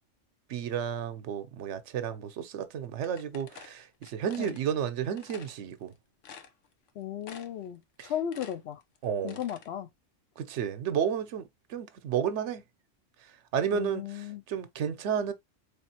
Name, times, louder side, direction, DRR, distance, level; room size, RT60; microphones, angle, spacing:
voice 1, 0.5-5.9 8.0-8.1 9.0-9.4 10.4-12.6 13.5-15.3, right 8 dB, 75° right, 1.0 m, -32 dB
sound 1, 3.0-4.6 5.2-5.5 5.9-6.0 6.2-6.9 7.2-7.7 8.0-9.7, left 6 dB, 85° left, 1.1 m, -49 dB
voice 2, 7.0-8.8 9.2-9.9 13.7-14.4, left 10 dB, 65° left, 0.8 m, -35 dB
4.0 x 3.4 x 2.8 m
omnidirectional pair, 1.2 m